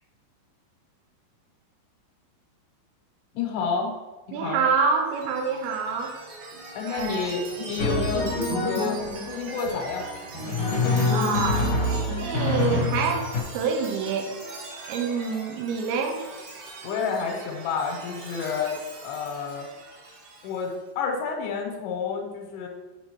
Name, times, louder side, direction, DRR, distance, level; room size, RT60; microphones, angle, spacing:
voice 1, 3.3-3.9 4.3-4.6 6.8-10.1 16.8-18.8 19.0-19.7 20.4-22.7, left 5 dB, 85° left, 1 dB, 3.0 m, -29 dB
voice 2, 4.3-6.1 6.9-7.3 11.1-13.3 13.5-14.3 14.9-16.2, right 5 dB, 80° right, 3 dB, 2.7 m, -27 dB
Chime, 4.9-20.8, right 2 dB, 60° right, 2.7 m, -41 dB
Drum, 7.8-9.3 10.3-13.4, left 3 dB, 65° left, 1.7 m, -25 dB
9.9 x 5.2 x 3.0 m, 1.2 s
omnidirectional pair, 4.9 m